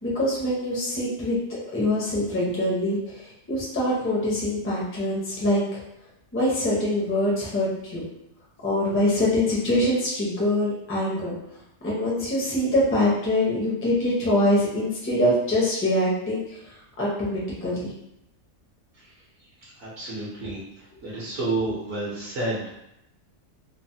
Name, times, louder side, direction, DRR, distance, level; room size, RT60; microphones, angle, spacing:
voice 1, 0.0-5.8 6.3-8.0 8.6-11.4 11.8-16.6 17.0-17.9, left 1 dB, 15° left, -5 dB, 0.5 m, -24 dB
voice 2, 19.8-20.6 21.0-22.8, right 2 dB, 60° right, -7 dB, 1.0 m, -29 dB
3.1 x 2.1 x 2.7 m, 0.83 s
omnidirectional pair, 1.5 m